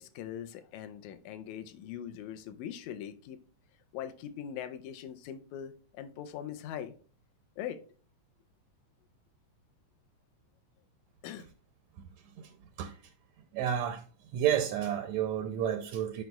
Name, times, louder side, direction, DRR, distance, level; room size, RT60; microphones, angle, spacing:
voice 1, 0.0-3.4 3.9-6.9 7.6-7.8 11.2-11.5, left 9 dB, 80° left, 1.9 m, -41 dB
voice 2, 13.5-14.0 14.3-16.2, right 10 dB, 75° right, 1.7 m, -31 dB
12.0 x 5.2 x 2.3 m
omnidirectional pair, 3.4 m